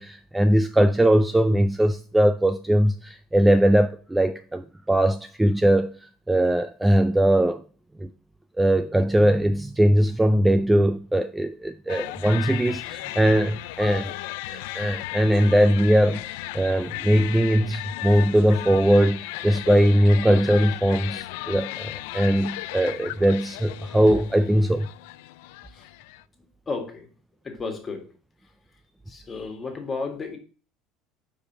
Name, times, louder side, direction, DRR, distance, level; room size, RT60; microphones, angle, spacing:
voice 1, 0.0-7.6 8.0-8.1 8.6-14.1 14.5-24.9, right 1 dB, 10° right, 0.3 m, -20 dB
sound 1, 11.9-26.2, left 17 dB, 80° left, 0.3 m, -36 dB
voice 2, 26.4-27.1 27.4-28.0 29.1-30.4, left 4 dB, 25° left, 1.9 m, -33 dB
4.9 x 4.9 x 6.0 m
supercardioid pair, 115°, 0 cm